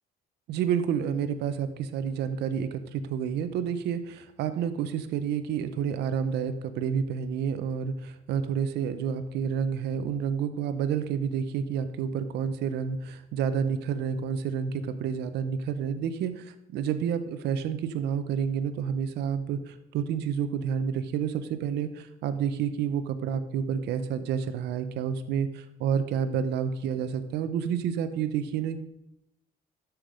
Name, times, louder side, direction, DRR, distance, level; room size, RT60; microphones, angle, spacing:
voice 1, 0.5-28.8, right 7 dB, 80° right, 11 dB, 0.9 m, -29 dB
13.0 x 6.0 x 5.1 m, 0.84 s
cardioid pair, 110°, 17 cm